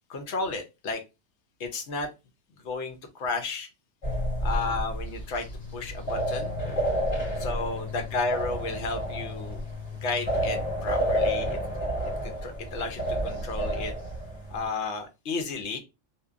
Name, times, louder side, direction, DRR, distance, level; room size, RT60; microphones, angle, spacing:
voice 1, 0.1-1.0 1.6-2.1 2.6-3.7 4.4-6.5 7.4-9.6 10.0-11.6 12.2-13.9 14.5-15.8, left 3 dB, 65° left, 6 dB, 0.9 m, -32 dB
sound 1, 4.0-14.7, equal, 30° left, 1.5 m, -30 dB
2.8 x 2.1 x 2.3 m, 0.26 s
omnidirectional pair, 1.3 m